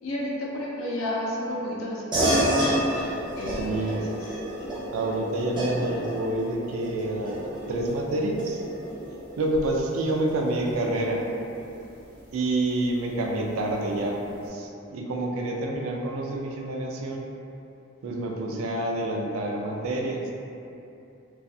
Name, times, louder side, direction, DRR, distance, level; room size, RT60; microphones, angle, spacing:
voice 1, 0.0-2.3 3.1-4.0 10.9-11.3, left 1 dB, 70° left, -4 dB, 0.5 m, -32 dB
sound 1, 2.1-12.0, right 1 dB, 20° right, 0.5 m, -30 dB
voice 2, 3.5-4.0 4.9-8.6 9.4-11.2 12.3-17.3 18.0-20.3, right 2 dB, 75° right, 0 dB, 0.4 m, -28 dB
2.3 x 2.3 x 2.5 m, 2.8 s
head